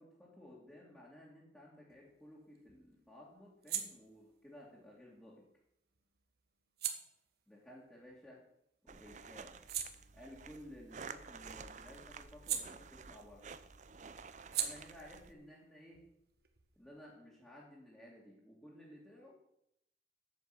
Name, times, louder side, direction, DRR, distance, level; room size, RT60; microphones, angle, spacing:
voice 1, 0.0-5.5 7.5-8.5 8.8-9.6 10.1-13.5 14.6-16.1 16.8-19.3, left 1 dB, 5° left, -6 dB, 2.2 m, -56 dB
sound 1, 1.9-8.8 9.2-13.4 13.7-17.1, right 9 dB, 60° right, 1.3 m, -45 dB
sound 2, 8.9-15.3, right 5 dB, 40° right, 0.6 m, -51 dB
8.4 x 7.3 x 7.6 m, 0.76 s
head